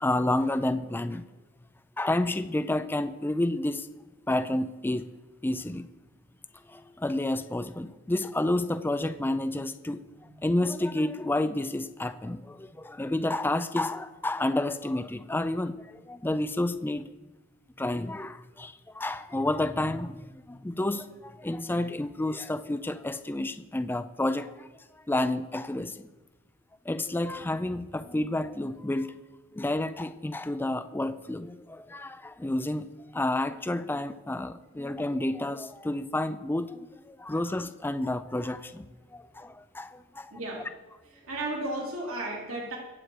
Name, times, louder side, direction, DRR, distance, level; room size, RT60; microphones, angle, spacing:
voice 1, 0.0-1.2 2.0-3.9 4.3-5.1 5.4-5.9 6.7-10.0 10.4-17.1 17.8-24.7 25.1-26.1 26.9-29.1 29.5-32.9 33.1-40.3, left 1 dB, 10° left, 10 dB, 0.4 m, -30 dB
voice 2, 40.3-40.7 41.1-42.8, right 2 dB, 85° right, -2 dB, 3.4 m, -34 dB
22.5 x 7.8 x 4.8 m, 1.2 s
head